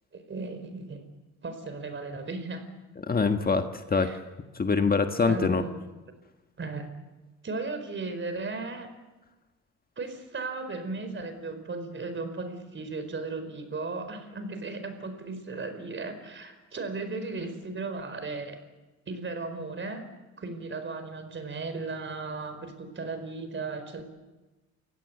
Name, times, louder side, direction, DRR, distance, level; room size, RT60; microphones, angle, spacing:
voice 1, 0.1-1.0 1.4-2.6 3.9-4.2 5.2-5.8 6.6-6.9 7.4-8.9 10.0-18.6 19.1-20.0 20.4-24.0, right 3 dB, 40° right, 9 dB, 4.8 m, -36 dB
voice 2, 3.1-4.2 4.5-5.6, left 4 dB, 30° left, 6 dB, 1.6 m, -24 dB
29.0 x 16.5 x 8.2 m, 1.2 s
cardioid pair, 90°, 30 cm